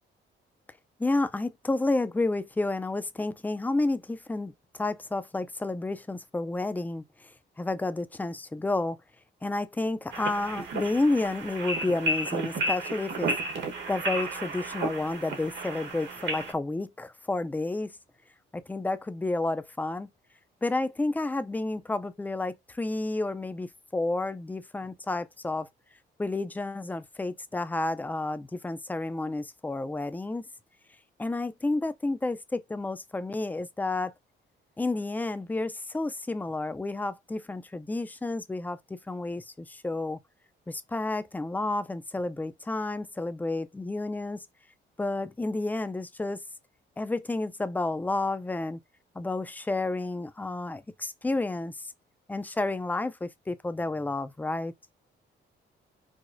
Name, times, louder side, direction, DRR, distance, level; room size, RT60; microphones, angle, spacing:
voice 1, 1.0-7.0 7.6-9.0 9.4-13.3 13.9-17.9 18.5-20.1 20.6-25.7 26.2-30.4 31.2-34.1 34.8-40.2 40.7-44.4 45.0-46.4 47.0-48.8 49.2-51.8 52.3-54.7, left 2 dB, 10° left, 0.3 m, -30 dB
field-recording, 10.1-16.5, right 2 dB, 65° right, 1.2 m, -32 dB
4.8 x 2.0 x 2.5 m
cardioid pair, 90°, 20 cm